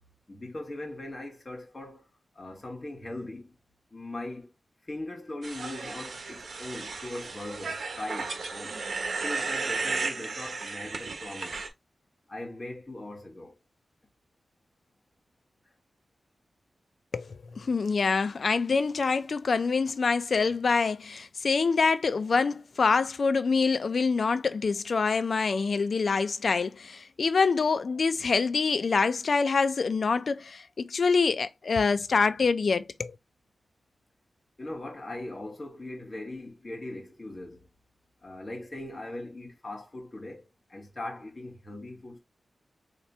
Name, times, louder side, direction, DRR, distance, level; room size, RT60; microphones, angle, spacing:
voice 1, 0.3-2.1 2.3-3.5 3.9-4.5 4.8-8.8 9.2-11.7 12.3-13.6 34.6-37.7 38.2-42.2, left 1 dB, 30° left, 1.6 m, -40 dB
sound 1, 5.4-11.7, right 4 dB, 70° right, 1.0 m, -34 dB
voice 2, 17.6-33.2, left 4 dB, 60° left, 0.4 m, -25 dB
3.3 x 2.9 x 4.2 m
wide cardioid pair, 120°, 0 cm